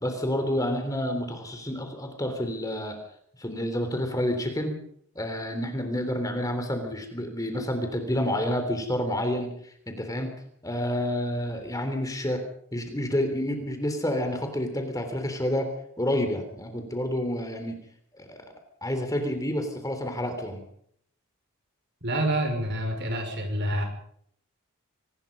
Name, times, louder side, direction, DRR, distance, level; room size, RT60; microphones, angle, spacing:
voice 1, 0.0-3.0 3.4-4.7 5.2-10.3 10.6-12.4 12.7-15.7 16.0-17.8 18.2-18.4 18.8-20.6, left 1 dB, 15° left, 6 dB, 3.4 m, -29 dB
voice 2, 22.0-23.8, right 1 dB, 50° right, 5 dB, 5.6 m, -27 dB
25.0 x 19.5 x 5.4 m, 0.66 s
head